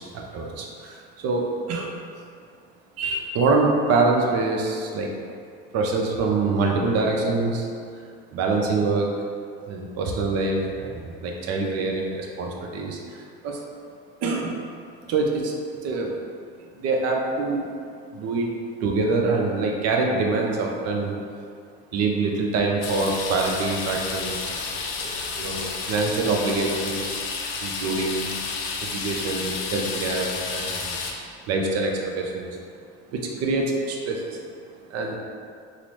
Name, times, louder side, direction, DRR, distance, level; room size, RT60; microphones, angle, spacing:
voice 1, 0.1-1.9 3.0-5.1 5.7-7.7 8.3-9.1 9.7-13.6 14.2-14.6 15.1-15.5 15.8-16.1 16.7-17.7 18.1-18.5 18.8-21.1 21.9-27.1 27.6-28.3 28.8-31.0 31.5-32.5 33.1-34.4 34.9-35.2, right 3 dB, 55° right, 0 dB, 0.6 m, -25 dB
sound 1, 22.8-31.1, left 4 dB, 80° left, 0.5 m, -31 dB
3.8 x 2.0 x 3.0 m, 2.2 s
supercardioid pair, 90°, 30 cm